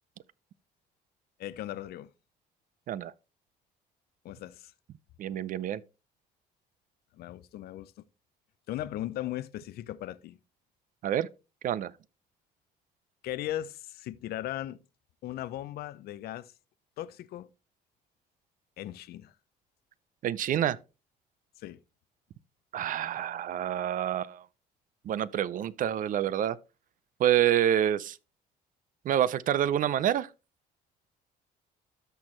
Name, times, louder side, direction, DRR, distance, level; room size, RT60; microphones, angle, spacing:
voice 1, 1.4-2.1 4.2-4.7 7.2-7.9 8.7-10.4 13.2-14.8 15.2-16.5 17.0-17.5 18.8-19.3 21.6-21.8, left 13 dB, 65° left, 0.6 m, -37 dB
voice 2, 5.2-5.8 11.0-11.3 11.6-11.9 20.2-20.8 22.7-24.4 25.0-26.6 27.2-28.2 29.0-30.3, right 11 dB, 55° right, 0.5 m, -27 dB
13.0 x 4.5 x 3.1 m
cardioid pair, 110°, 17 cm